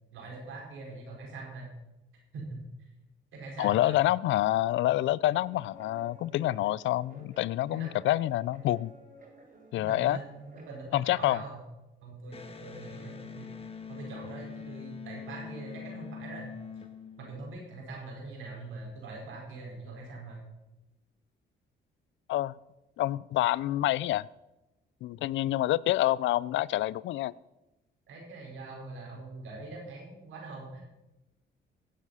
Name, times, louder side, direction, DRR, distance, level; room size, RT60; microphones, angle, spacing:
voice 1, 0.1-1.7 2.3-2.6 3.3-4.0 7.7-7.9 9.8-11.6 12.0-13.5 13.9-16.5 17.2-20.4 28.1-30.8, right 3 dB, 85° right, -1 dB, 4.7 m, -43 dB
voice 2, 3.6-8.9 9.7-10.2 10.9-11.4 22.3-22.5 23.0-24.3 25.0-27.3, left 15 dB, 75° left, 22 dB, 0.4 m, -27 dB
Guitar, 5.4-10.9, right 2 dB, 45° right, 4.0 m, -53 dB
Electric guitar, 12.3-17.8, left 6 dB, 30° left, 1.5 m, -44 dB
16.0 x 7.5 x 5.6 m, 0.99 s
cardioid pair, 90°, 20 cm